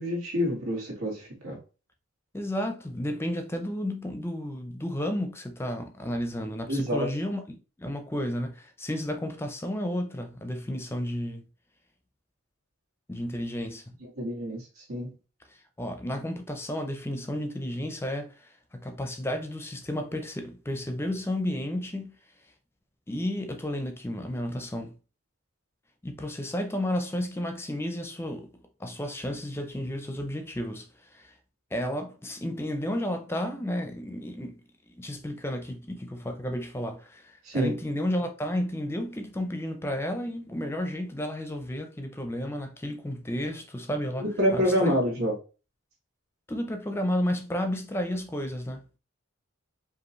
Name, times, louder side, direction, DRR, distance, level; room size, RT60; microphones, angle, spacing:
voice 1, 0.0-1.6 6.7-7.1 14.2-15.1 37.4-37.7 44.2-45.3, equal, 90° right, 1.9 m, -27 dB
voice 2, 2.3-11.4 13.1-13.9 15.8-22.1 23.1-24.9 26.0-28.5 28.8-31.3 31.7-34.6 35.0-44.2 44.5-45.3 46.5-48.8, left 1 dB, 10° left, 0.6 m, -32 dB
5.2 x 2.6 x 3.1 m
head